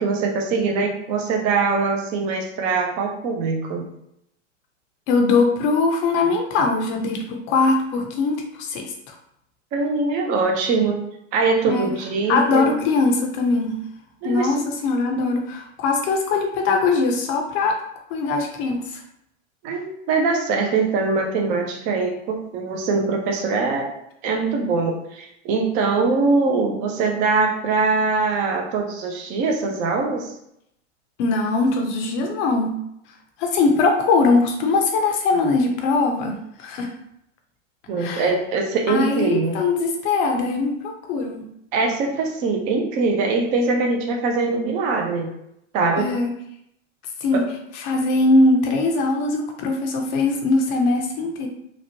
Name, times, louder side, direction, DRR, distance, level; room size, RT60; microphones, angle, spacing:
voice 1, 0.0-3.9 9.7-11.0 11.3-12.7 14.2-14.6 19.6-23.9 24.2-30.3 37.9-39.6 41.7-45.3 45.7-46.1 47.3-47.4, right 4 dB, 20° right, 1 dB, 0.3 m, -22 dB
voice 2, 5.1-9.2 11.6-11.9 12.3-13.8 14.2-17.8 18.1-19.0 31.2-32.8 33.4-36.9 38.0-38.3 38.9-41.5 46.0-46.3 47.2-47.4 47.8-51.5, left 3 dB, 35° left, 3 dB, 0.5 m, -21 dB
2.9 x 2.0 x 2.7 m, 0.77 s
hypercardioid pair, 110°, 38 cm